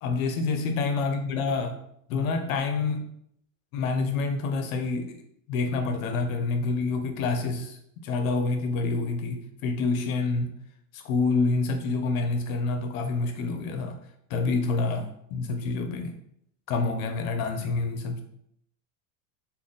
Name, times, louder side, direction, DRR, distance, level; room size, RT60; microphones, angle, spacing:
voice 1, 0.0-1.8 2.1-3.0 3.7-5.2 5.5-10.5 10.9-14.0 14.3-16.2 16.7-18.2, left 3 dB, 85° left, 5 dB, 0.8 m, -27 dB
3.4 x 2.2 x 4.0 m, 0.72 s
supercardioid pair, 135°, 40 cm